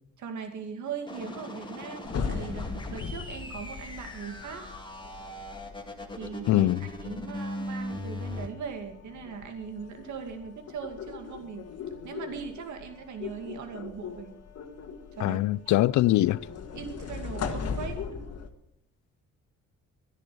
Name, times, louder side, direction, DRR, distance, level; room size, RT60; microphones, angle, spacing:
voice 1, 0.2-4.6 6.2-11.6 12.0-14.3 15.2-15.4 16.7-18.0, right 6 dB, 70° right, 2.4 m, -39 dB
sound 1, 1.1-8.5, left 1 dB, 15° left, 2.4 m, -39 dB
sound 2, 2.0-18.5, left 6 dB, 55° left, 1.7 m, -39 dB
voice 2, 6.5-6.8 15.2-16.4, left 15 dB, 70° left, 0.5 m, -22 dB
13.0 x 10.5 x 7.7 m
cardioid pair, 90°, 30 cm